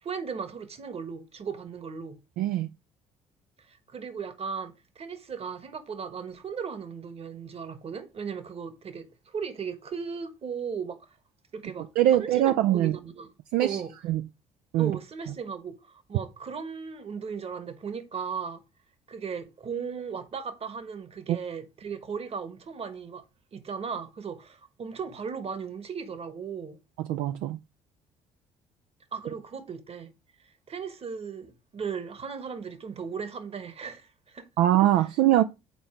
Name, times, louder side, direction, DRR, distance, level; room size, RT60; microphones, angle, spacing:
voice 1, 0.0-2.2 3.6-11.2 11.5-13.3 13.6-13.9 14.8-18.6 19.1-23.2 23.5-26.8 29.1-30.1 30.4-34.5, right 6 dB, 40° right, 1.3 m, -37 dB
voice 2, 2.4-2.7 12.0-13.0 13.5-14.2 14.7-14.9 15.3-15.4 21.3-21.4 27.0-27.6 34.6-35.4, right 13 dB, 65° right, 0.4 m, -23 dB
5.3 x 4.3 x 5.9 m
hypercardioid pair, 55°, 15 cm